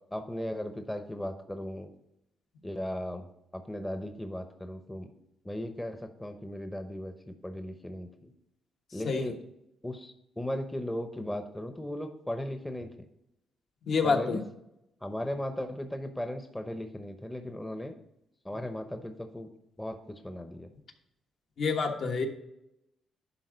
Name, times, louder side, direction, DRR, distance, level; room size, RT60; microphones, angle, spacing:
voice 1, 0.1-1.9 2.6-3.3 3.5-5.1 5.4-8.3 8.9-9.3 9.8-12.9 14.0-14.4 15.0-17.9 18.4-19.5 19.8-20.0 20.2-20.7, left 1 dB, 10° left, 6 dB, 0.8 m, -37 dB
voice 2, 13.9-14.4 21.6-22.3, left 4 dB, 60° left, 2 dB, 1.4 m, -27 dB
11.0 x 3.8 x 5.1 m, 0.81 s
cardioid pair, 90°, 0 cm